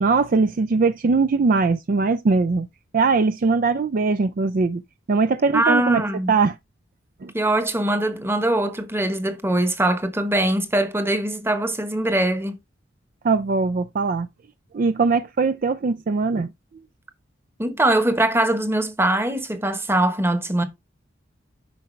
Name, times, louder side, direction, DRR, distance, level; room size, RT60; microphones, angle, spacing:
voice 1, 0.0-2.7 2.9-4.8 5.1-6.6 7.2-7.3 13.2-14.3 14.7-16.5, right 4 dB, 50° right, 0.4 m, -21 dB
voice 2, 5.5-6.3 7.3-12.6 17.6-20.6, right 1 dB, 15° right, 1.1 m, -22 dB
10.0 x 5.7 x 3.2 m
head